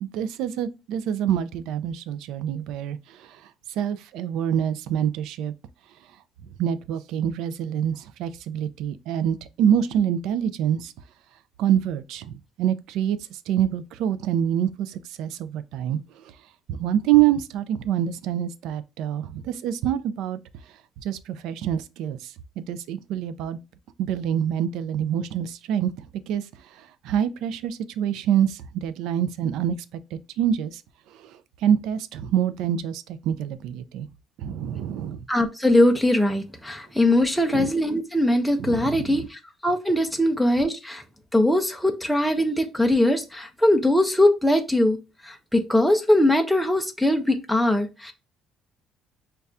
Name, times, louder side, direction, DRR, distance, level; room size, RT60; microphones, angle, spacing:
voice 1, 0.0-3.4 3.8-5.5 6.6-10.9 11.6-16.0 16.7-20.4 21.0-23.6 24.0-25.9 26.3-26.4 26.8-29.7 30.1-30.8 31.2-34.1 34.4-35.2 37.5-37.7 38.6-39.2, right 10 dB, 80° right, 0.3 m, -26 dB
voice 2, 35.3-41.0 41.3-45.0 45.2-48.1, left 1 dB, ahead, 0.3 m, -21 dB
5.3 x 2.2 x 2.4 m
cardioid pair, 160°, 0 cm